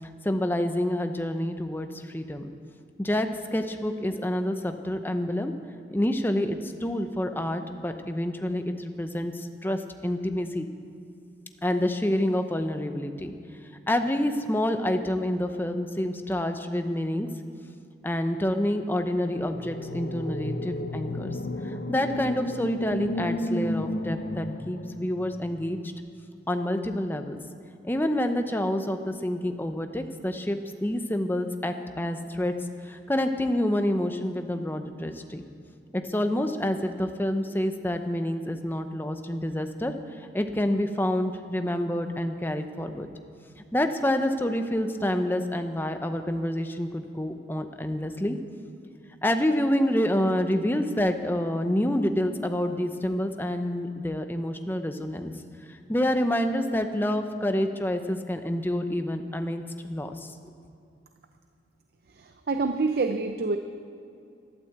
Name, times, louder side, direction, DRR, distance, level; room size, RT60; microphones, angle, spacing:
voice 1, 0.2-2.5 3.0-5.5 5.9-10.7 11.6-13.3 13.9-17.3 18.0-21.4 21.6-25.8 26.5-27.4 27.8-32.5 32.8-35.4 35.9-39.9 40.2-43.1 43.7-48.4 49.2-55.3 55.7-60.1, left 1 dB, 10° left, 7 dB, 0.8 m, -28 dB
sound 1, 19.5-25.6, left 1 dB, 55° left, 0.8 m, -33 dB
voice 2, 62.2-63.6, right 3 dB, 55° right, 7 dB, 0.6 m, -27 dB
12.5 x 12.0 x 7.9 m, 2.5 s
head